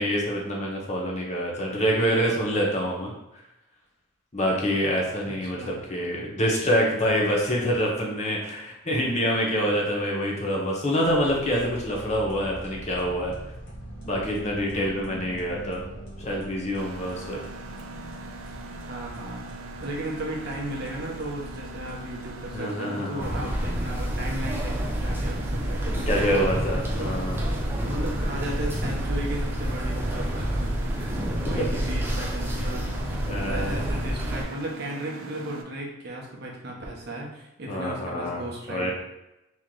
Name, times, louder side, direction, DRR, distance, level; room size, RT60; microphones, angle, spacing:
voice 1, 0.0-3.1 4.3-13.3 14.0-15.8 16.2-17.4 22.5-23.5 26.1-27.4 31.5-31.6 33.2-33.8 37.7-38.4 38.7-38.9, equal, 35° left, -2 dB, 0.7 m, -26 dB
voice 2, 5.3-5.7 18.9-19.4 19.8-26.5 26.9-27.2 27.8-31.1 31.5-32.9 33.3-38.9, right 1 dB, 50° right, -2 dB, 0.8 m, -35 dB
sound 1, 11.0-22.6, equal, 70° left, 1.1 m, -42 dB
Mechanisms, 16.8-35.6, right 2 dB, 90° right, 0.4 m, -42 dB
sound 2, 23.2-34.4, equal, 10° right, 0.4 m, -28 dB
3.1 x 2.9 x 3.8 m, 0.91 s
head